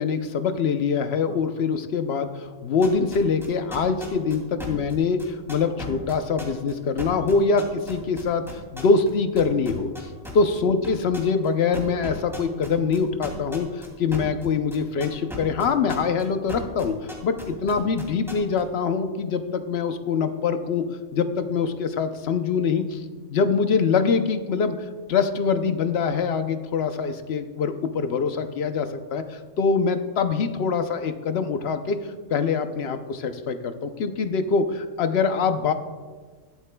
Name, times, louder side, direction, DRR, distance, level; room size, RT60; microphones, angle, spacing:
voice 1, 0.0-9.9 10.3-16.9 17.2-17.3 17.6-20.8 21.1-23.0 23.3-24.8 25.1-32.0 32.3-35.7, left 5 dB, 60° left, 8 dB, 0.9 m, -24 dB
sound 1, 2.8-9.1 9.3-10.6 10.8-11.5 11.7-16.2 16.5-18.6, left 1 dB, ahead, 2.5 m, -37 dB
23.0 x 8.2 x 2.2 m, 1.4 s
omnidirectional pair, 1.3 m